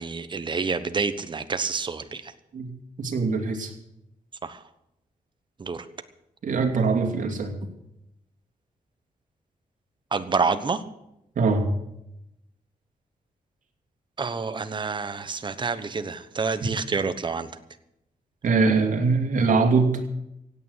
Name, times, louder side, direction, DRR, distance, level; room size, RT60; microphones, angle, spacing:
voice 1, 0.0-2.3 4.4-4.6 5.6-5.8 10.1-10.8 14.2-17.5, right 4 dB, 35° right, 11 dB, 1.1 m, -28 dB
voice 2, 3.0-3.7 6.4-7.5 11.4-11.7 18.4-20.0, right 4 dB, 65° right, 2 dB, 2.8 m, -22 dB
16.5 x 8.9 x 8.2 m, 0.83 s
wide cardioid pair, 140°, 14 cm